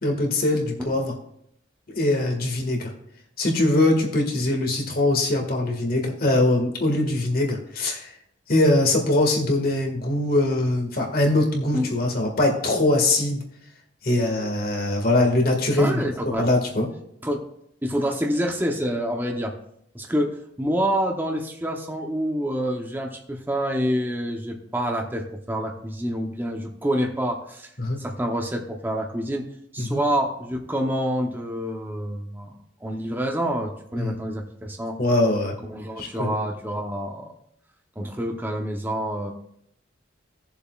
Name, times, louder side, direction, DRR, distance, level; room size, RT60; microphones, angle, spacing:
voice 1, 0.0-1.1 1.9-2.9 3.4-8.1 8.5-13.4 14.0-16.0 16.3-16.9 27.8-28.0 29.8-30.0 34.0-34.2 35.0-35.6 36.0-36.3, left 2 dB, 50° left, 1 dB, 1.8 m, -22 dB
voice 2, 15.8-16.5 17.2-17.4 17.8-19.5 19.9-27.7 28.0-29.5 29.7-32.5 32.8-35.0 35.6-37.3 38.0-39.3, equal, 10° right, 1 dB, 0.8 m, -27 dB
18.0 x 6.9 x 2.4 m, 0.72 s
head